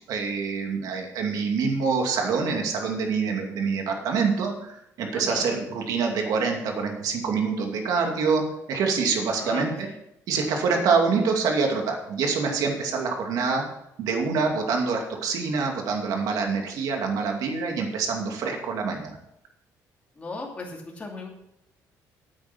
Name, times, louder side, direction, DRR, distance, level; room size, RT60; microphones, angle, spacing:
voice 1, 0.1-8.4 8.7-9.9 10.3-13.6 14.0-19.2, right 5 dB, 70° right, 3 dB, 2.5 m, -26 dB
voice 2, 5.1-5.5 9.3-9.9 20.2-21.3, left 2 dB, 20° left, -1 dB, 2.6 m, -37 dB
9.0 x 8.9 x 6.2 m, 0.81 s
cardioid pair, 135°, 7 cm